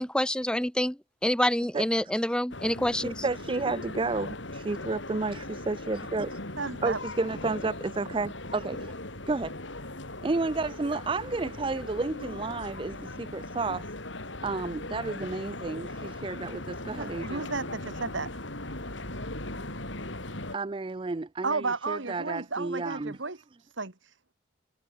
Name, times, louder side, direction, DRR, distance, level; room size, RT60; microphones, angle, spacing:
voice 1, 0.0-3.2, left 1 dB, 5° left, 0.8 m, -27 dB
sound 1, 2.5-20.6, left 2 dB, 75° left, 5.8 m, -39 dB
voice 2, 3.0-6.4 6.8-8.9 9.3-9.5 10.2-13.9 14.4-17.4 20.5-23.2, right 3 dB, 25° right, 0.4 m, -31 dB
voice 3, 6.6-7.0 17.0-18.3 21.4-24.3, right 3 dB, 75° right, 2.5 m, -33 dB
head